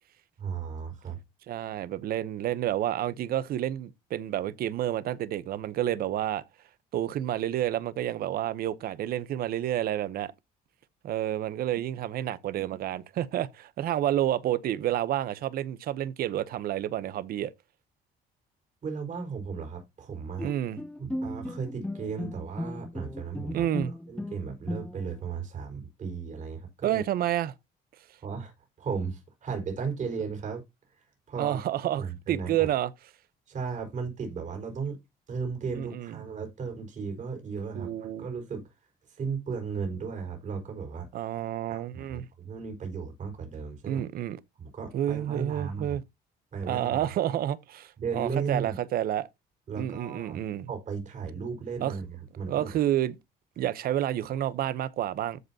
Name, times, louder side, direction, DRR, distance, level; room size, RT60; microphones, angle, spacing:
voice 1, 0.4-1.2 18.8-20.5 21.0-23.7 24.1-27.0 28.2-28.5 28.8-30.6 31.0-31.6 32.0-32.7 33.5-35.0 35.3-38.7 39.1-41.1 41.7-44.0 44.6-46.0 46.5-47.1 48.0-48.8 49.7-50.4 50.7-52.1 52.4-52.7, right 5 dB, 45° right, 4.8 m, -35 dB
voice 2, 1.5-6.4 6.9-10.3 11.0-17.5 20.4-20.8 23.5-23.9 26.8-27.5 31.4-32.9 35.8-36.2 37.7-38.3 41.1-42.3 43.9-44.4 44.9-46.0 46.7-49.3 49.8-50.7 51.8-52.0 52.5-53.2 53.6-55.4, right 12 dB, 65° right, 0.9 m, -29 dB
Bowed string instrument, 20.4-25.2, left 1 dB, 5° left, 0.7 m, -36 dB
14.0 x 5.3 x 2.9 m
cardioid pair, 110°, 17 cm